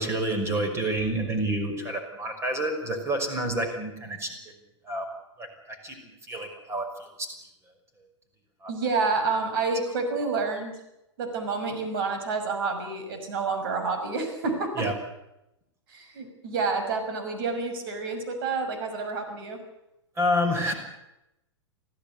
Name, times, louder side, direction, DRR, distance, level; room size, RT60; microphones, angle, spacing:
voice 1, 0.0-4.4 4.9-5.1 5.4-6.9 7.2-7.3 8.6-8.7 14.8-14.9 20.2-20.7, right 1 dB, 15° right, 6 dB, 5.7 m, -28 dB
voice 2, 8.7-10.7 11.2-14.9 15.9-19.6, right 4 dB, 50° right, 6 dB, 6.2 m, -29 dB
24.5 x 16.0 x 8.3 m, 0.87 s
figure-of-eight pair, 105°, 15 cm